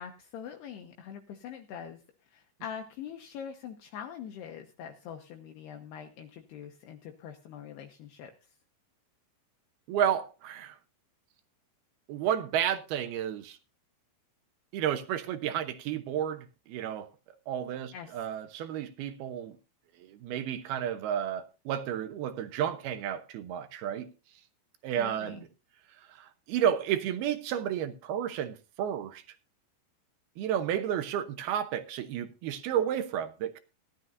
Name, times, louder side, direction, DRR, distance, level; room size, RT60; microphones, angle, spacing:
voice 1, 0.0-2.0 2.3-8.3 17.9-18.2 25.0-25.4, left 8 dB, 75° left, 2.8 m, -43 dB
voice 2, 9.9-10.8 12.1-13.6 14.7-17.1 17.5-19.6 20.0-24.1 24.8-25.5 26.0-29.2 30.4-33.6, right 9 dB, 75° right, 2.4 m, -32 dB
18.5 x 12.0 x 2.6 m
omnidirectional pair, 5.4 m